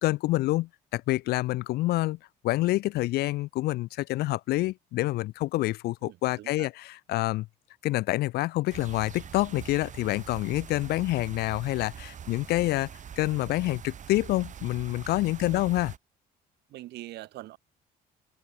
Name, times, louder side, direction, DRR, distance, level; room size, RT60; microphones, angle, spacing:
voice 1, 0.0-2.2 2.4-7.5 7.8-12.9 13.2-15.9, left 18 dB, 70° left, 0.4 m, -27 dB
voice 2, 6.0-6.7 15.4-15.7 16.7-17.6, right 16 dB, 80° right, 4.5 m, -44 dB
sound 1, 8.7-16.0, right 8 dB, 45° right, 7.8 m, -44 dB
open air
cardioid pair, 110°, 17 cm